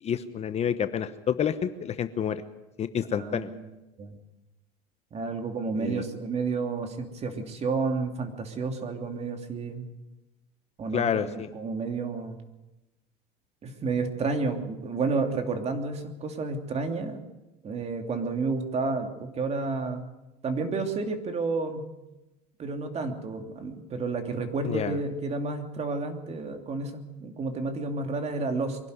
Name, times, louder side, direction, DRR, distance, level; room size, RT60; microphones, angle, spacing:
voice 1, 0.0-2.4 2.8-3.5 5.8-6.0 10.9-11.5 24.6-24.9, left 8 dB, 35° left, 11 dB, 1.0 m, -29 dB
voice 2, 3.1-3.7 4.0-4.2 5.1-9.9 10.8-12.4 13.6-17.2 17.6-20.0 20.4-21.8 22.6-28.8, right 4 dB, 35° right, 5 dB, 2.9 m, -31 dB
23.5 x 12.0 x 9.6 m, 1.0 s
supercardioid pair, 110°, 20 cm